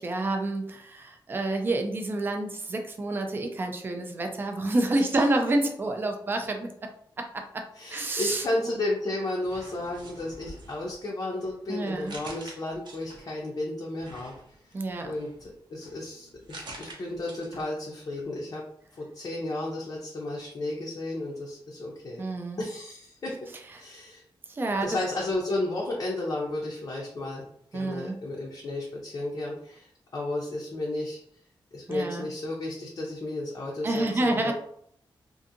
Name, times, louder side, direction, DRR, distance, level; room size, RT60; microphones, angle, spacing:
voice 1, 0.0-6.9 7.2-7.6 7.9-8.8 11.7-12.2 14.7-15.1 22.2-22.6 23.7-23.8 24.5-25.0 27.7-28.1 31.9-32.3 33.8-34.5, right 2 dB, 25° right, 4 dB, 0.3 m, -29 dB
voice 2, 7.8-14.3 15.0-18.7 18.9-22.2 22.6-23.4 23.8-24.2 24.8-29.9 30.1-31.2 31.7-34.5, left 2 dB, 45° left, -3 dB, 0.5 m, -33 dB
sound 1, 8.1-9.0 9.4-13.5 14.0-17.8 18.1-18.2, right 2 dB, 60° right, 0.6 m, -48 dB
2.6 x 2.5 x 2.5 m, 0.67 s
wide cardioid pair, 165°, 9 cm